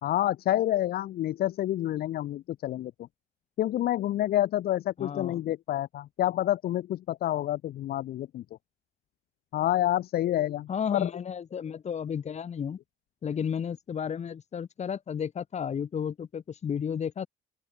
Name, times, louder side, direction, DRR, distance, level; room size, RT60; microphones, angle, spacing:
voice 1, 0.0-2.9 3.6-8.4 9.5-11.1, left 13 dB, 65° left, 2.0 m, -28 dB
voice 2, 5.0-5.4 10.7-12.8 13.2-17.3, left 7 dB, 40° left, 4.5 m, -32 dB
open air
cardioid pair, 110°, 17 cm